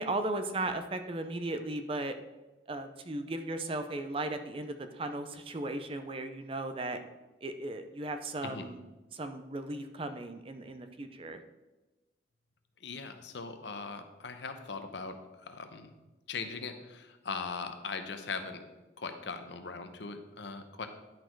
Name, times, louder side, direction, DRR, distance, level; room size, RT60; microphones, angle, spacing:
voice 1, 0.0-2.1 2.7-7.0 7.4-8.8 9.1-11.4, right 2 dB, 30° right, 8 dB, 0.5 m, -36 dB
voice 2, 12.8-15.9 16.3-18.6 19.0-20.9, left 4 dB, 70° left, 8 dB, 0.7 m, -40 dB
10.5 x 4.3 x 4.5 m, 1.1 s
head